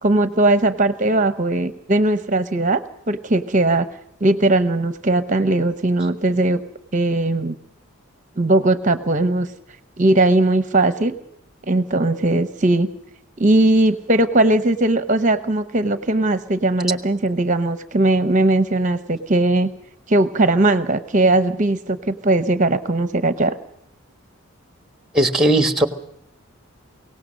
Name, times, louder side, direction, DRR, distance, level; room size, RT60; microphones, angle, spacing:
voice 1, 0.0-3.9 4.2-6.6 6.9-7.5 8.4-9.5 10.0-11.2 11.7-12.9 13.4-19.7 20.1-23.5, right 2 dB, 35° right, 11 dB, 0.8 m, -19 dB
voice 2, 25.1-25.9, right 1 dB, ahead, 8 dB, 1.4 m, -17 dB
23.0 x 18.0 x 6.5 m, 0.72 s
head